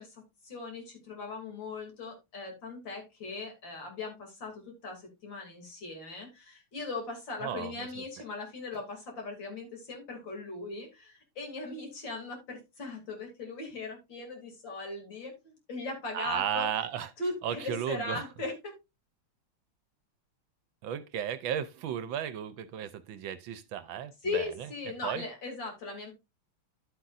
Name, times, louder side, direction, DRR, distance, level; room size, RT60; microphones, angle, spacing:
voice 1, 0.0-16.7 17.2-18.7 24.2-26.1, left 3 dB, 60° left, 3.5 m, -39 dB
voice 2, 7.4-8.0 16.1-17.1 17.4-18.2 20.8-24.7 25.0-25.2, right 9 dB, 75° right, 1.4 m, -34 dB
11.5 x 7.9 x 2.5 m
omnidirectional pair, 2.3 m